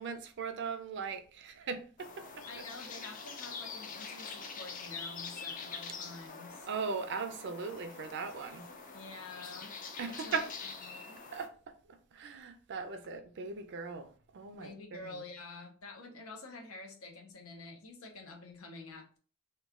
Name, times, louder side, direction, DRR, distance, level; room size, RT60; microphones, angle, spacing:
voice 1, 0.0-2.4 6.7-8.7 10.0-10.5 11.3-14.7 15.0-15.2, right 5 dB, 55° right, 0.4 m, -39 dB
sound 1, 2.0-11.5, left 5 dB, 40° left, 0.5 m, -45 dB
voice 2, 2.5-6.7 8.9-9.8 10.2-11.2 14.5-19.2, left 3 dB, 85° left, 0.8 m, -48 dB
3.0 x 2.3 x 3.6 m
head